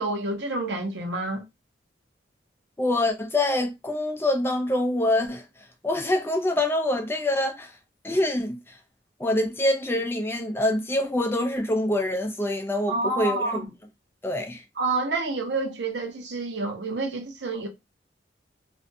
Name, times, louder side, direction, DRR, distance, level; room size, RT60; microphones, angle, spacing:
voice 1, 0.0-1.4 12.9-13.7 14.8-17.7, right 3 dB, 75° right, 0.7 m, -28 dB
voice 2, 2.8-5.4 5.8-7.7 8.0-8.6 9.2-13.6 14.2-14.6, left 1 dB, 15° left, 0.4 m, -25 dB
2.5 x 2.2 x 2.5 m
head